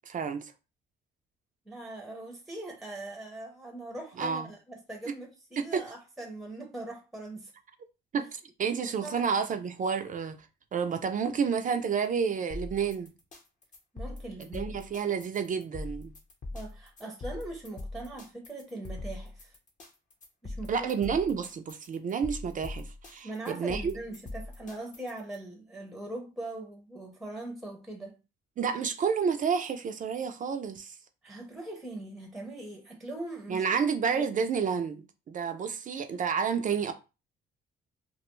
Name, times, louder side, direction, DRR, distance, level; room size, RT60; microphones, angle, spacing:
voice 1, 0.1-0.5 4.2-4.5 5.6-5.8 8.1-10.4 10.7-13.1 14.4-16.1 20.7-23.9 28.6-31.0 33.5-36.9, right 6 dB, 40° right, 0.4 m, -30 dB
voice 2, 1.7-7.5 8.7-9.2 13.9-14.8 16.5-19.5 20.4-20.9 23.2-28.2 31.2-33.7 34.1-34.4, right 2 dB, ahead, 0.6 m, -41 dB
sound 1, 12.5-25.4, left 2 dB, 40° left, 0.7 m, -42 dB
2.3 x 2.2 x 3.0 m
cardioid pair, 90°, 20 cm